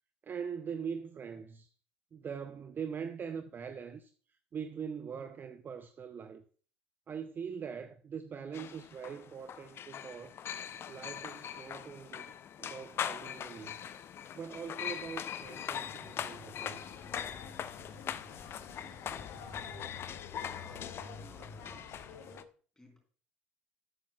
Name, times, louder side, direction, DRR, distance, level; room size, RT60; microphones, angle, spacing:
voice 1, 0.2-1.7 2.1-4.1 4.5-6.4 7.1-10.4 10.9-12.3 12.6-13.8 14.3-17.1, right 7 dB, 30° right, 0.5 m, -42 dB
sound 1, 8.5-22.4, left 9 dB, 40° left, 0.5 m, -42 dB
sound 2, 15.4-22.4, left 5 dB, 55° left, 1.8 m, -50 dB
voice 2, 20.4-21.8 22.8-23.0, equal, 10° left, 3.9 m, -56 dB
11.5 x 8.5 x 2.3 m
figure-of-eight pair, 65°, 6 cm